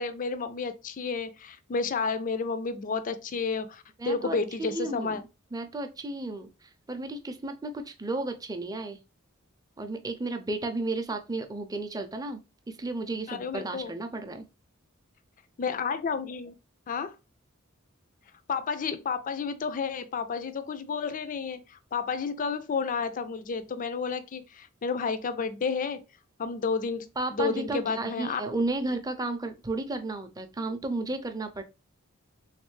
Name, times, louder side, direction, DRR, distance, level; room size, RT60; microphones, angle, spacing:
voice 1, 0.0-5.2 13.3-13.9 15.6-16.5 16.9-17.1 18.5-26.0 26.4-28.4, left 5 dB, 40° left, 0.4 m, -31 dB
voice 2, 4.0-5.2 5.5-9.0 9.8-12.4 12.7-14.5 27.2-31.6, right 2 dB, 20° right, 0.5 m, -33 dB
3.4 x 3.2 x 3.1 m
head